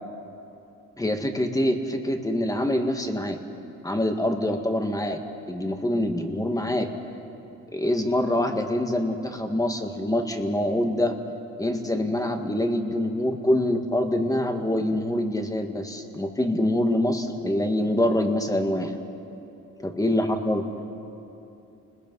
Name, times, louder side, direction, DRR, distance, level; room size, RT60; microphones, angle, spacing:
voice 1, 1.0-3.4 3.8-5.2 5.5-6.9 7.7-11.2 11.6-18.9 19.8-20.7, left 1 dB, 10° left, 5 dB, 1.9 m, -25 dB
29.5 x 20.5 x 5.5 m, 2.9 s
cardioid pair, 90°, 30 cm